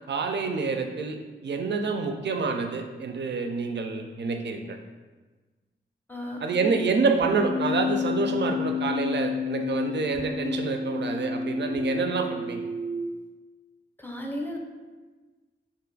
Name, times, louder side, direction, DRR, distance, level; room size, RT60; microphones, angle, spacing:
voice 1, 0.1-1.2 1.4-4.8 6.4-12.6, right 4 dB, 60° right, 5 dB, 0.4 m, -27 dB
voice 2, 6.1-6.7 14.0-14.6, left 1 dB, 10° left, 1 dB, 0.6 m, -35 dB
Keyboard (musical), 7.2-13.1, left 5 dB, 85° left, 0.8 m, -30 dB
2.5 x 2.4 x 3.9 m, 1.3 s
cardioid pair, 40°, 21 cm